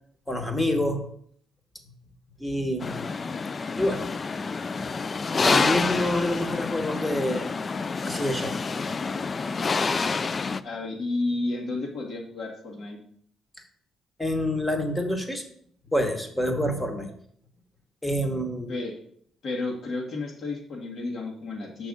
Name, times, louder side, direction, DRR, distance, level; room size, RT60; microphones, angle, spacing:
voice 1, 0.3-1.0 2.4-3.1 3.8-4.1 5.4-7.5 8.0-8.5 14.2-15.4 15.9-17.1 18.0-18.8, left 1 dB, 10° left, 4 dB, 1.2 m, -27 dB
sound 1, 2.8-10.6, left 4 dB, 35° left, 0.3 m, -28 dB
voice 2, 10.6-13.0 18.7-18.9 19.4-21.9, left 2 dB, 65° left, -1 dB, 1.6 m, -31 dB
6.0 x 4.7 x 5.3 m, 0.64 s
cardioid pair, 90°, 0 cm